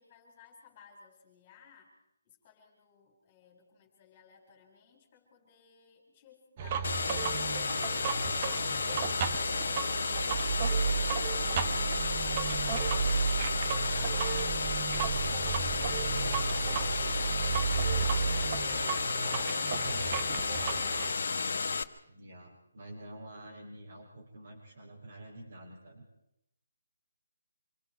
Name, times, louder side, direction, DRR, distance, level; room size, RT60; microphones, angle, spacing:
voice 1, 0.0-2.0 2.2-17.2, left 6 dB, 20° left, 0 dB, 4.3 m, -59 dB
sound 1, 6.6-21.1, right 6 dB, 25° right, 1.1 m, -33 dB
sound 2, 6.8-21.8, left 4 dB, 60° left, 1.1 m, -32 dB
voice 2, 18.2-19.0 19.7-26.1, right 1 dB, 55° right, -4 dB, 5.6 m, -48 dB
27.0 x 21.0 x 4.7 m, 0.81 s
hypercardioid pair, 170°, 0 cm